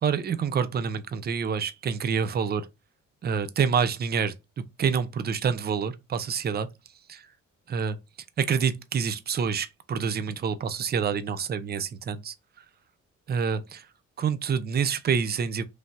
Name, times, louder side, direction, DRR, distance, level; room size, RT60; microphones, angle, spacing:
voice 1, 0.0-2.7 3.2-4.3 4.8-6.7 7.1-7.3 7.7-8.0 8.4-12.3 13.3-13.9 14.2-15.6, right 6 dB, 35° right, 0.4 m, -27 dB
3.2 x 2.7 x 2.2 m
cardioid pair, 90°, 30 cm